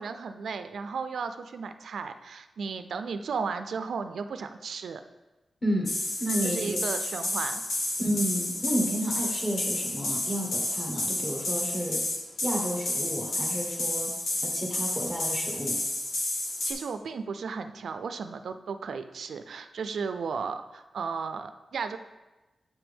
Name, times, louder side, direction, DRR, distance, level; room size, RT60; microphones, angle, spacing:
voice 1, 0.0-5.0 6.4-7.6 16.6-22.0, right 5 dB, 85° right, 9 dB, 0.3 m, -34 dB
voice 2, 5.6-5.9 6.2-6.8 8.0-12.0 12.4-14.1 14.4-15.8, equal, 10° left, 0 dB, 1.5 m, -31 dB
sound 1, 5.9-16.7, left 1 dB, 85° left, 1.4 m, -31 dB
7.4 x 6.0 x 3.5 m, 1.1 s
wide cardioid pair, 130°, 0 cm